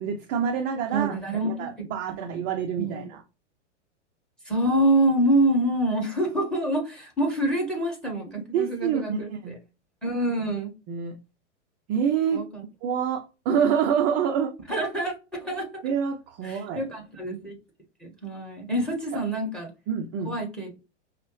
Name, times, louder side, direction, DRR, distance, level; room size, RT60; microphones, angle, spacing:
voice 1, 0.0-1.2 1.4-3.2 8.4-9.6 10.9-11.2 11.9-12.4 12.8-14.5 15.8-16.9 19.1-19.2 19.9-20.3, right 7 dB, 25° right, 5 dB, 0.3 m, -27 dB
voice 2, 0.9-1.7 2.2-2.4 2.8-3.1 4.4-9.5 10.0-10.7 12.3-12.6 14.7-15.8 16.4-17.5 18.0-19.7 20.2-20.8, right 1 dB, ahead, 2 dB, 1.4 m, -26 dB
5.2 x 2.0 x 3.0 m, 0.30 s
hypercardioid pair, 110°, 37 cm